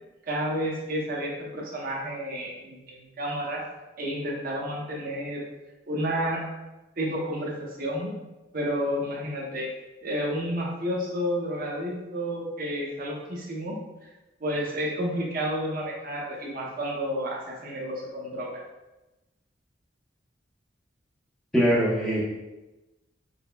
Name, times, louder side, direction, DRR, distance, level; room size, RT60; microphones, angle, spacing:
voice 1, 0.3-3.6 4.0-5.4 5.9-6.4 7.0-8.1 8.5-9.7 10.0-13.7 14.4-18.5, equal, 45° right, -3 dB, 0.6 m, -30 dB
voice 2, 21.5-22.2, equal, 5° left, -6 dB, 0.7 m, -22 dB
4.9 x 2.0 x 2.2 m, 1.1 s
head